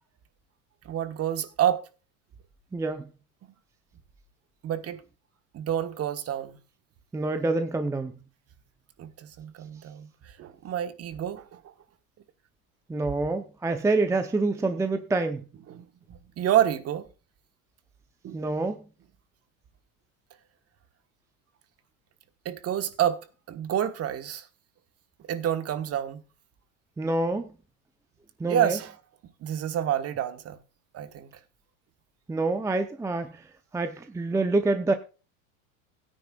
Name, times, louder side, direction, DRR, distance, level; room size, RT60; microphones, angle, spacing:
voice 1, 0.8-1.8 4.6-5.0 5.5-6.6 9.0-11.7 15.7-17.1 18.2-18.4 22.4-23.2 23.5-24.5 25.3-26.2 28.5-28.9 29.4-30.6 30.9-31.3, right 10 dB, 35° right, 1.3 m, -28 dB
voice 2, 2.7-3.1 7.1-8.1 12.9-15.4 18.3-18.8 27.0-27.5 28.4-28.8 32.3-33.3 33.7-34.9, right 2 dB, 5° right, 0.6 m, -26 dB
16.5 x 9.9 x 2.3 m
supercardioid pair, 130°, 43 cm